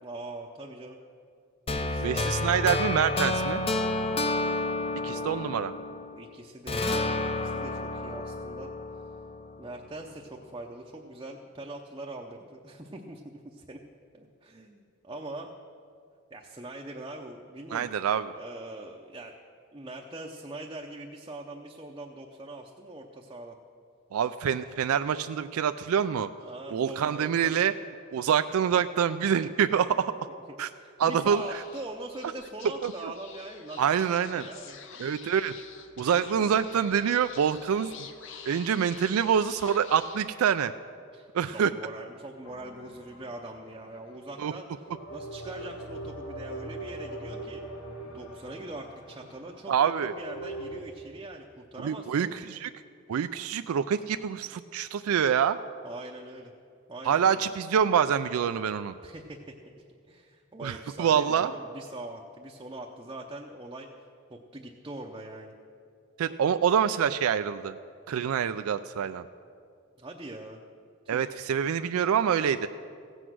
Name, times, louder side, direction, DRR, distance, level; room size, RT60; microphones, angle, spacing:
voice 1, 0.0-1.0 1.7-2.5 5.1-8.7 9.6-13.8 14.1-15.6 16.3-17.9 18.3-19.4 19.7-23.6 26.4-27.6 30.7-34.0 34.3-34.9 36.1-36.5 41.1-44.7 45.1-47.6 48.1-52.4 55.8-56.5 56.9-57.4 59.0-59.6 60.1-63.9 64.3-65.5 70.0-70.6 71.0-71.3, right 2 dB, 20° right, 0 dB, 0.6 m, -42 dB
sound 1, 1.7-6.2 6.7-9.8, left 2 dB, 25° left, 0.6 m, -30 dB
voice 2, 2.0-3.6 5.0-5.7 17.7-18.3 24.1-26.3 26.7-27.7 28.1-30.1 30.6-30.7 31.0-31.4 32.8-32.9 33.8-34.5 35.0-35.5 36.0-37.9 38.5-40.7 41.3-41.7 44.4-44.5 49.7-50.1 51.8-52.7 53.1-55.6 57.0-58.9 60.6-61.5 66.2-67.7 68.1-69.2 71.1-72.7, right 8 dB, 85° right, 10 dB, 0.3 m, -26 dB
Speech / Whispering, 31.0-40.8, left 7 dB, 60° left, 0.8 m, -48 dB
sound 2, 42.4-44.1 44.9-50.8, right 1 dB, 80° left, 1.4 m, -41 dB
16.0 x 8.0 x 6.1 m, 2.3 s
head